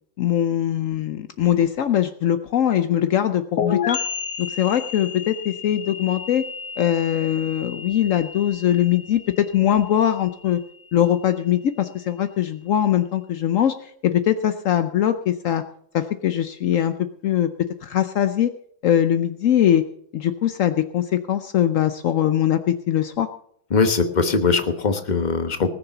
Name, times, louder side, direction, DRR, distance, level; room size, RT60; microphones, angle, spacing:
voice 1, 0.2-4.0 4.4-6.4 6.8-10.6 10.9-15.6 15.9-16.9 17.2-17.5 17.8-18.5 18.8-19.8 20.1-23.3, left 10 dB, 75° left, 9 dB, 0.7 m, -21 dB
sound 1, 3.6-11.1, left 7 dB, 55° left, 1.5 m, -32 dB
voice 2, 23.7-25.7, left 4 dB, 30° left, 8 dB, 1.0 m, -21 dB
19.5 x 6.9 x 6.9 m, 0.68 s
omnidirectional pair, 2.1 m